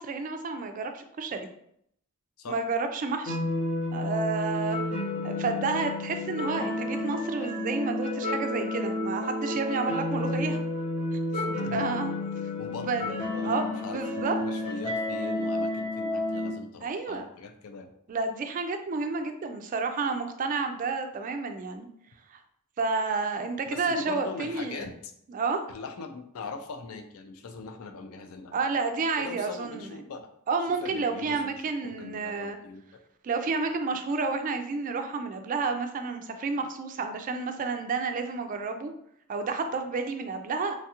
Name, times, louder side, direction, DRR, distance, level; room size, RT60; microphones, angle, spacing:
voice 1, 0.0-1.5 2.5-3.5 3.9-4.8 5.2-10.6 11.4-12.1 12.9-13.1 13.4-14.4 16.8-17.3 18.1-21.9 22.3-22.4 22.8-24.9 25.3-25.6 28.5-30.0 30.5-32.6 33.2-38.9 39.3-40.8, right 4 dB, 40° right, 6 dB, 0.3 m, -30 dB
sound 1, 3.2-16.5, left 2 dB, 35° left, 0.8 m, -31 dB
voice 2, 11.3-11.8 12.6-17.9 23.7-25.1 25.7-28.5 29.2-30.3 30.8-32.8, left 3 dB, 85° left, 7 dB, 0.4 m, -41 dB
3.1 x 2.3 x 2.8 m, 0.71 s
head